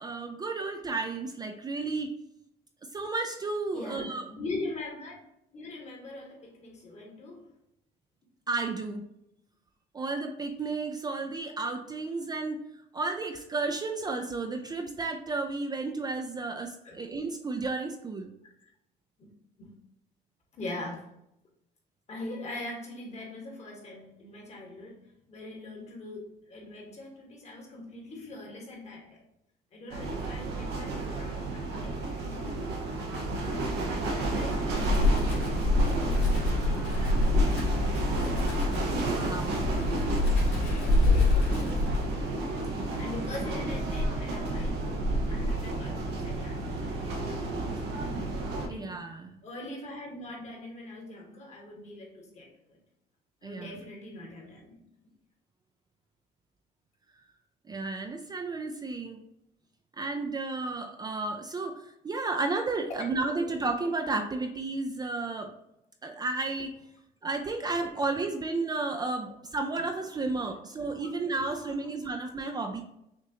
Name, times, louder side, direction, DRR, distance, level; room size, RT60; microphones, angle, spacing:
voice 1, 0.0-2.1 2.9-4.3 8.5-9.0 9.9-12.6 12.9-18.3 39.1-39.6 48.7-49.4 53.4-53.8 57.7-59.2 59.9-65.5 66.0-66.7 67.2-72.8, right 3 dB, 25° right, 0.4 m, -32 dB
voice 2, 3.7-5.2 5.5-7.5 16.8-17.0 18.4-18.5 19.2-19.3 19.6-19.7 20.5-21.1 22.1-25.0 25.3-29.2 29.7-33.0 33.5-37.6 38.2-38.7 41.1-41.7 43.0-44.9 45.3-47.8 48.7-49.0 49.4-52.8 53.4-54.8 70.8-71.7 72.6-72.8, left 2 dB, 40° left, 1.5 m, -42 dB
sound 1, 29.9-48.7, right 2 dB, 85° right, 0.8 m, -32 dB
Wind, 34.6-42.3, left 2 dB, 85° left, 1.5 m, -26 dB
6.2 x 2.5 x 2.8 m
cardioid pair, 110°, 17 cm